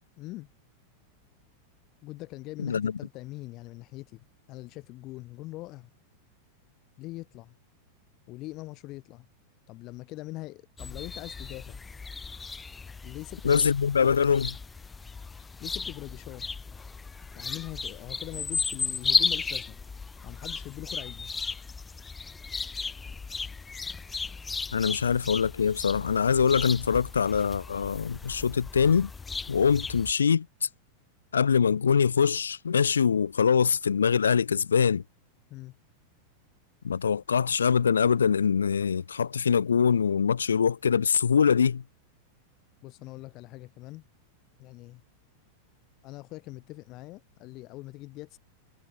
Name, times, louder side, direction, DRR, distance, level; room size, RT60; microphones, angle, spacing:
voice 1, 0.2-0.5 2.0-4.2 4.5-5.9 7.0-7.6 8.3-9.3 9.7-11.8 13.0-13.7 15.6-16.5 17.4-19.8 20.2-21.3 24.8-24.9 35.5-35.7 42.8-44.0 44.6-45.0 46.0-48.4, left 19 dB, 40° left, 2.2 m, -42 dB
sound 1, 10.8-30.1, left 4 dB, 15° left, 0.5 m, -35 dB
voice 2, 13.4-14.5 24.7-29.1 29.5-30.7 31.3-35.0 36.8-41.8, left 6 dB, 70° left, 0.6 m, -23 dB
figure-of-eight pair, 90°, 0 cm